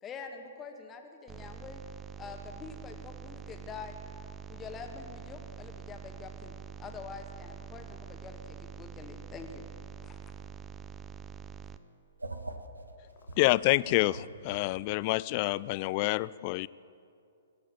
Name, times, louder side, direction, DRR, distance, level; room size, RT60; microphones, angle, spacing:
voice 1, 0.0-1.8 2.2-4.0 4.5-9.7 10.0-10.2, left 5 dB, 20° left, 5 dB, 1.5 m, -45 dB
sound 1, 1.3-11.8, right 8 dB, 15° right, 0.6 m, -45 dB
voice 2, 12.2-13.4 14.1-14.2, right 2 dB, 85° right, 6 dB, 1.7 m, -42 dB
voice 3, 13.4-16.7, left 20 dB, 40° left, 20 dB, 0.3 m, -27 dB
18.0 x 8.6 x 9.2 m, 2.5 s
figure-of-eight pair, 120°, 0 cm